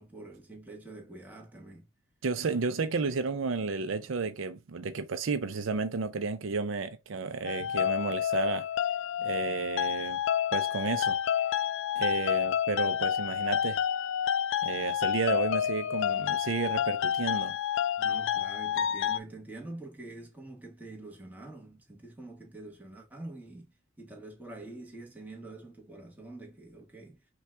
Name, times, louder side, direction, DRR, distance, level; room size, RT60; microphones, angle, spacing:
voice 1, 0.0-1.9 9.2-9.3 18.0-23.7 24.0-27.2, right 2 dB, 10° right, 1.2 m, -46 dB
voice 2, 2.2-8.7 9.2-10.2 10.5-11.2 12.0-13.8 14.6-17.6, right 4 dB, 70° right, 0.5 m, -32 dB
sound 1, 7.4-19.2, left 9 dB, 65° left, 0.3 m, -29 dB
5.6 x 2.3 x 3.3 m
head